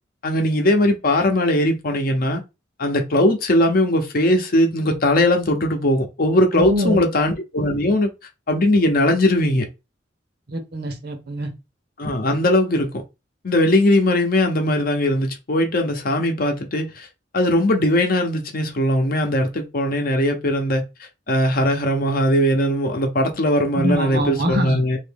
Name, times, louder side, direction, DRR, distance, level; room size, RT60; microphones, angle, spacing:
voice 1, 0.2-2.4 2.8-8.1 8.5-9.7 12.0-12.9 13.4-17.1 17.3-20.8 21.3-25.0, left 1 dB, 55° left, 0.7 m, -19 dB
voice 2, 6.5-7.1 10.5-11.5 23.7-24.8, equal, 60° right, 0.9 m, -24 dB
2.9 x 2.6 x 3.5 m
head